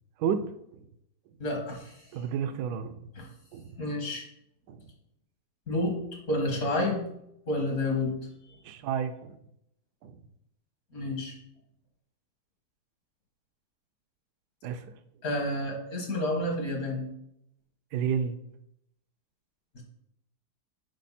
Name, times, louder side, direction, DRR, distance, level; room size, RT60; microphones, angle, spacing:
voice 1, 0.2-0.8 2.1-3.0 3.5-3.8 4.7-4.9 8.6-9.4 10.0-10.2 14.6-14.8 17.9-18.4, right 7 dB, 75° right, 8 dB, 1.2 m, -31 dB
voice 2, 1.4-2.1 3.2-3.3 3.8-4.3 5.7-6.0 6.3-7.0 7.5-8.2 10.9-11.3 15.2-17.0, left 1 dB, 60° left, 1 dB, 2.3 m, -29 dB
10.0 x 5.3 x 4.2 m, 0.79 s
omnidirectional pair, 1.7 m